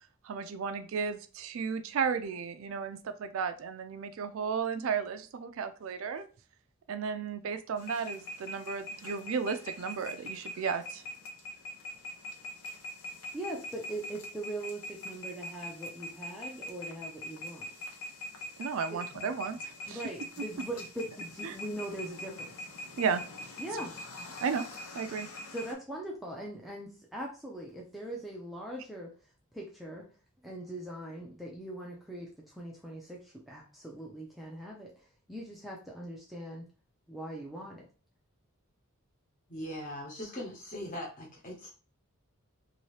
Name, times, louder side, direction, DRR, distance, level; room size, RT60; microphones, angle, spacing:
voice 1, 0.2-6.2 6.9-11.0 18.6-20.0 21.4-21.6 23.0-23.2 24.4-24.7 24.9-25.3, right 6 dB, 65° right, 9 dB, 0.4 m, -34 dB
sound 1, 7.8-25.7, left 1 dB, 75° left, 0.7 m, -43 dB
voice 2, 13.3-17.7 18.9-19.0 19.9-22.7 23.6-24.0 25.5-29.1 29.5-30.1 30.4-36.7 37.1-37.9, right 1 dB, ahead, -3 dB, 0.4 m, -41 dB
voice 3, 39.5-41.7, left 1 dB, 40° left, -1 dB, 1.1 m, -40 dB
2.8 x 2.7 x 3.1 m, 0.38 s
head